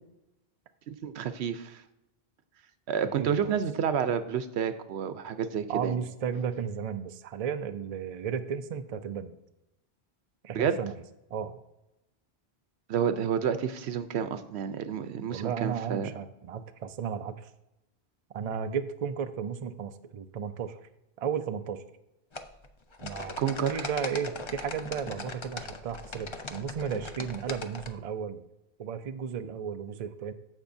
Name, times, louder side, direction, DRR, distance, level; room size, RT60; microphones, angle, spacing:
voice 1, 0.9-1.8 2.9-6.0 10.5-10.8 12.9-16.1 23.4-23.9, right 7 dB, 85° right, 11 dB, 0.9 m, -29 dB
voice 2, 3.2-3.6 5.7-9.3 10.4-10.9 11.3-11.6 15.3-17.5 18.3-20.8 21.2-21.8 23.0-23.3 23.7-28.4 28.8-30.3, right 7 dB, 45° right, 9 dB, 0.5 m, -34 dB
sound 1, 22.3-27.9, left 3 dB, 35° left, 0.5 m, -40 dB
15.5 x 5.4 x 2.6 m, 0.92 s
omnidirectional pair, 1.1 m